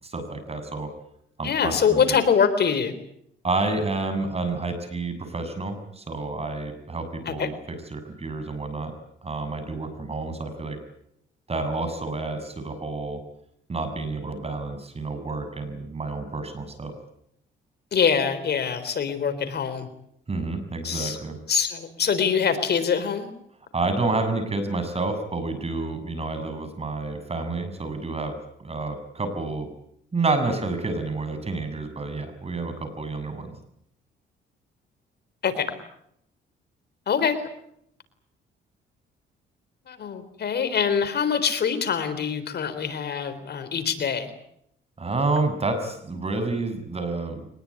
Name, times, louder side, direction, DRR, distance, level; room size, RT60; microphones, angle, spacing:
voice 1, 0.0-0.9 1.4-2.2 3.4-7.5 7.9-8.9 9.2-10.8 11.5-13.2 13.7-16.9 20.3-21.4 23.7-29.7 30.1-33.5 45.0-47.5, right 3 dB, 30° right, 9 dB, 7.0 m, -29 dB
voice 2, 1.4-2.9 7.3-7.5 17.9-19.9 20.8-21.2 21.5-23.3 35.4-35.7 37.1-37.4 39.9-44.3, left 7 dB, 55° left, 11 dB, 4.0 m, -24 dB
24.0 x 20.5 x 9.8 m, 0.74 s
cardioid pair, 90°, 20 cm